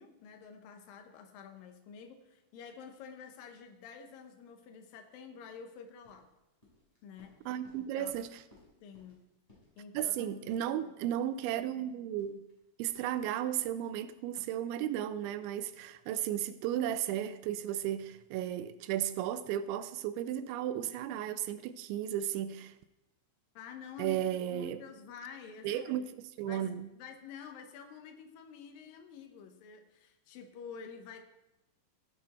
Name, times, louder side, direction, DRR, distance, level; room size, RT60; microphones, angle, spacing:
voice 1, 0.0-6.3 7.0-7.4 7.8-8.2 8.8-9.3 9.8-10.5 23.6-26.1 26.4-26.7 26.9-31.2, left 6 dB, 75° left, 2.2 m, -49 dB
sound 1, 5.7-14.5, left 2 dB, 10° left, 5.0 m, -65 dB
voice 2, 7.5-8.4 9.9-12.4 12.8-22.7 24.0-24.8 25.6-26.9, right 11 dB, 85° right, 2.9 m, -34 dB
16.0 x 8.2 x 4.3 m
omnidirectional pair, 5.4 m